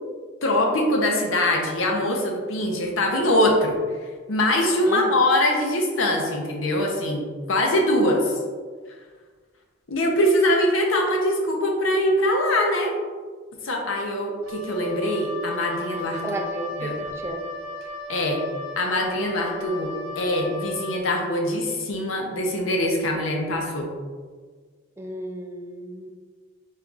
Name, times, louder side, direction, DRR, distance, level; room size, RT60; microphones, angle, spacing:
voice 1, 0.4-3.8 4.3-8.3 9.9-13.0 13.6-16.4 16.8-17.0 18.1-18.4 18.8-23.9, left 1 dB, 80° left, 1 dB, 0.7 m, -23 dB
voice 2, 4.9-5.2 16.2-17.4 25.0-26.1, right 1 dB, 15° right, 2 dB, 0.3 m, -32 dB
Wind instrument woodwind instrument, 14.4-21.1, left 1 dB, 85° right, 0.4 m, -36 dB
4.1 x 3.8 x 2.4 m, 1.5 s
head